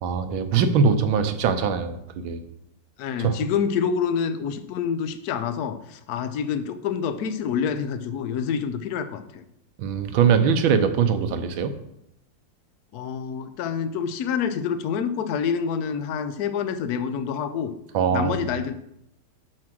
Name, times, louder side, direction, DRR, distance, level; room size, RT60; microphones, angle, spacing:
voice 1, 0.0-2.4 3.2-3.4 9.8-11.7 17.9-18.5, right 6 dB, 80° right, 8 dB, 1.6 m, -22 dB
voice 2, 3.0-9.4 12.9-17.7 18.1-18.7, left 7 dB, 65° left, 10 dB, 1.0 m, -27 dB
7.3 x 6.2 x 6.0 m, 0.80 s
omnidirectional pair, 2.2 m